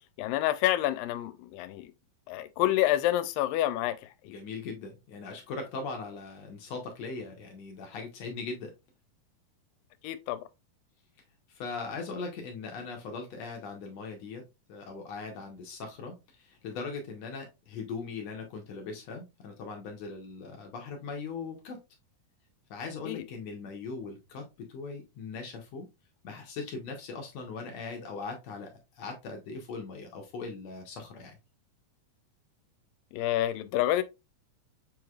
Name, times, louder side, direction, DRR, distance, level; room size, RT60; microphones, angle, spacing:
voice 1, 0.2-1.9 2.3-4.3 10.0-10.4 23.1-23.3 33.1-34.0, left 14 dB, 85° left, 2.2 m, -28 dB
voice 2, 4.2-8.7 11.5-14.4 14.7-21.8 22.7-25.9 26.2-31.4, left 4 dB, 70° left, 1.7 m, -40 dB
7.3 x 3.1 x 2.3 m
omnidirectional pair, 3.9 m